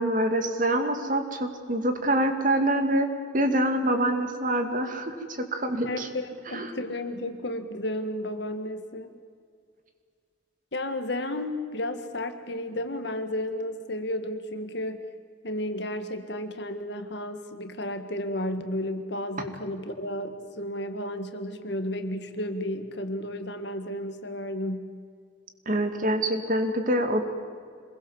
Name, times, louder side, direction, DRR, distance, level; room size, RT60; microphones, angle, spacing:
voice 1, 0.0-3.1 3.3-5.2 5.5-6.1 6.5-6.7 25.7-27.2, right 1 dB, 40° right, 6 dB, 2.3 m, -25 dB
voice 2, 5.8-9.1 10.7-15.0 15.4-24.9, left 1 dB, 60° left, 8 dB, 1.9 m, -33 dB
26.5 x 22.0 x 7.4 m, 2.2 s
head